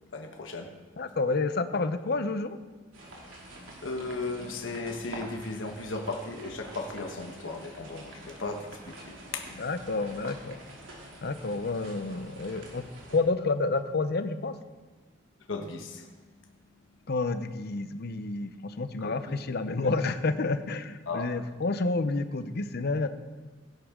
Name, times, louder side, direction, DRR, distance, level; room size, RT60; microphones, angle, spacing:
voice 1, 0.1-0.9 3.8-9.6 15.5-16.3 19.0-19.4 19.7-20.0 21.1-21.3, left 3 dB, 75° left, 3 dB, 1.2 m, -36 dB
voice 2, 1.0-2.6 9.6-10.6 11.2-12.8 13.1-14.5 17.1-23.1, left 3 dB, 55° left, 10 dB, 0.7 m, -29 dB
sound 1, 2.9-13.2, right 1 dB, 85° right, 2.9 m, -47 dB
16.5 x 10.5 x 3.7 m, 1.3 s
head